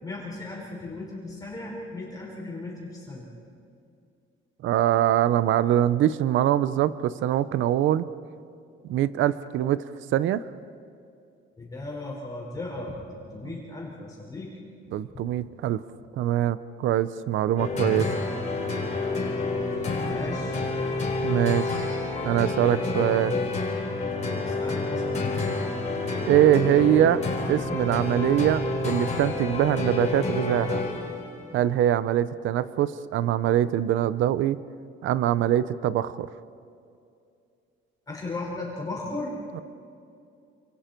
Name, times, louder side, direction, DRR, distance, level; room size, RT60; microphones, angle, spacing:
voice 1, 0.0-3.3 11.6-14.5 20.1-20.6 24.5-25.3 38.1-39.4, left 2 dB, 20° left, -4 dB, 5.1 m, -36 dB
voice 2, 4.6-8.0 8.9-9.8 10.1-10.4 13.4-13.5 14.9-15.8 16.1-18.1 21.2-23.3 26.3-30.8 31.5-34.6 35.0-36.3 39.5-39.6, right 12 dB, 70° right, 15 dB, 0.7 m, -23 dB
sound 1, 17.6-31.3, left 3 dB, 35° left, 4.1 m, -28 dB
29.0 x 27.5 x 4.5 m, 2.5 s
cardioid pair, 170°, 21 cm